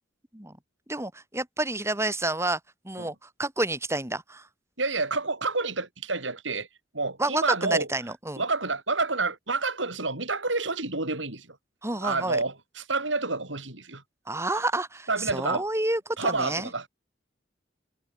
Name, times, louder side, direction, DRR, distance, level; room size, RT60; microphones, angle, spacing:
voice 1, 0.9-2.6 2.8-3.1 3.4-4.5 7.2-8.4 11.8-12.4 14.3-16.7, right 2 dB, 15° right, 3.8 m, -29 dB
voice 2, 4.8-6.7 6.9-7.9 8.4-11.6 12.0-14.0 15.1-15.6 16.2-16.9, right 3 dB, 80° right, 6.4 m, -29 dB
head